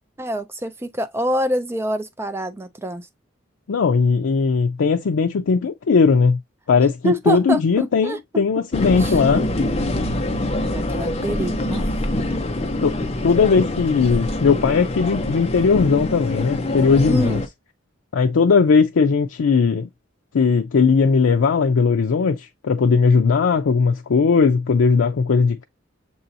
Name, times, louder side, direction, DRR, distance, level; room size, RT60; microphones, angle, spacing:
voice 1, 0.2-3.1 7.0-8.4 9.0-9.1 10.7-11.9 17.1-17.4, right 1 dB, 15° right, 0.4 m, -25 dB
voice 2, 3.7-6.4 6.7-9.5 12.8-12.9 13.2-17.4 18.1-19.9 20.3-25.6, left 5 dB, 85° left, 0.4 m, -18 dB
sound 1, 8.7-17.5, left 1 dB, 30° left, 0.7 m, -25 dB
6.7 x 2.8 x 2.6 m
head